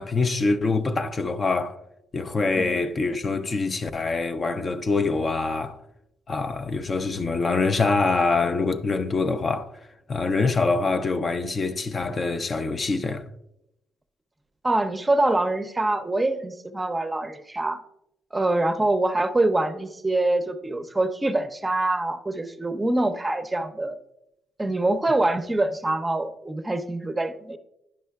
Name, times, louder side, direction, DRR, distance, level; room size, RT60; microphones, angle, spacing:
voice 1, 0.0-1.8 2.1-5.8 6.3-9.7 10.1-13.3, left 3 dB, 35° left, 0.4 m, -25 dB
voice 2, 14.6-17.8 18.3-24.0 24.6-27.6, right 2 dB, 15° right, 0.6 m, -25 dB
10.0 x 5.4 x 2.3 m
cardioid pair, 90°, 0 cm